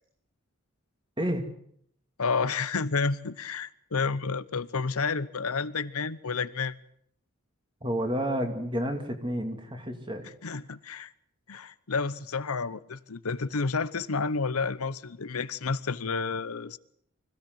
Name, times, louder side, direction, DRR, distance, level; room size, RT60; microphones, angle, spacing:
voice 1, 2.2-6.8 10.4-11.1 11.5-16.8, left 4 dB, 85° left, 0.9 m, -30 dB
voice 2, 7.8-10.3, equal, 20° right, 2.7 m, -30 dB
25.0 x 16.0 x 7.9 m
head